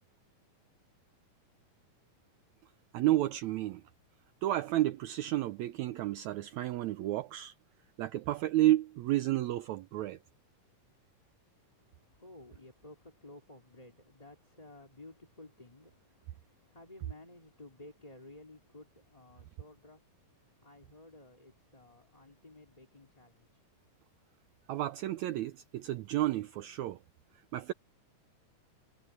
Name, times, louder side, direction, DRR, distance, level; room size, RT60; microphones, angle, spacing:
voice 1, 2.9-3.8 4.4-7.5 8.0-10.2 24.7-27.0 27.5-27.7, right 15 dB, 85° right, 1.6 m, -31 dB
voice 2, 11.7-23.8, left 2 dB, 10° left, 3.0 m, -55 dB
omnidirectional pair, 4.0 m